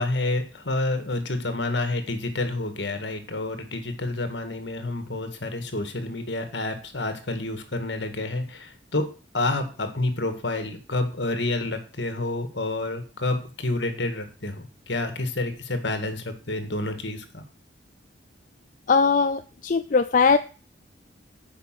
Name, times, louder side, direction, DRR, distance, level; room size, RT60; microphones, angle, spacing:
voice 1, 0.0-9.1 9.3-17.4, left 2 dB, 70° left, 7 dB, 1.9 m, -29 dB
voice 2, 18.9-20.4, left 5 dB, 45° left, 9 dB, 0.4 m, -20 dB
9.7 x 5.4 x 7.5 m, 0.37 s
head